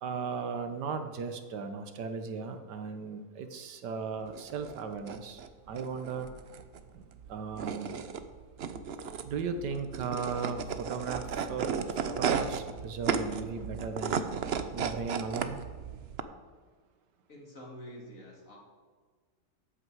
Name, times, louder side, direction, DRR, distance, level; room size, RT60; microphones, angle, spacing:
voice 1, 0.0-5.4 5.7-6.3 6.9-7.0 7.3-8.0 9.2-14.2 14.7-15.6, right 5 dB, 85° right, 8 dB, 1.6 m, -36 dB
sound 1, 4.3-16.2, right 6 dB, 55° right, 0.7 m, -35 dB
voice 2, 17.3-18.6, equal, 50° left, -1 dB, 2.9 m, -47 dB
13.0 x 8.9 x 4.7 m, 1.5 s
omnidirectional pair, 1.8 m